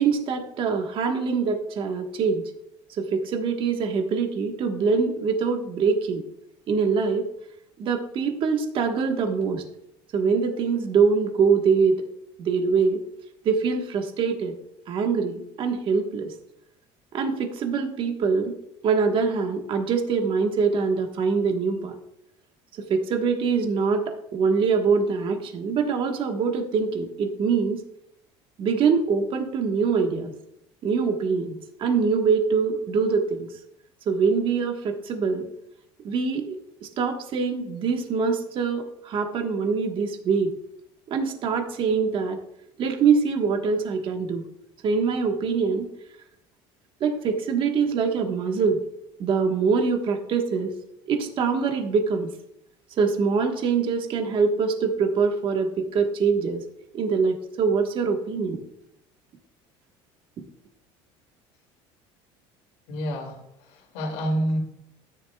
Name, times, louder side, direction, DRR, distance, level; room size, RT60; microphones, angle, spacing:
voice 1, 0.0-2.4 3.0-6.2 6.7-7.2 7.8-9.6 10.1-12.0 12.4-13.0 13.4-14.5 14.9-16.3 17.1-18.5 18.8-21.9 22.9-27.8 28.6-30.3 30.8-33.5 34.1-35.5 36.0-40.5 41.1-42.4 42.8-44.4 44.8-45.9 47.0-48.8 49.2-50.7 51.1-52.3 53.0-56.6 56.9-58.6, right 5 dB, 45° right, 3 dB, 1.4 m, -24 dB
voice 2, 62.9-64.6, equal, 75° left, 1 dB, 2.5 m, -28 dB
13.0 x 10.0 x 2.3 m, 0.79 s
cardioid pair, 125°, 12 cm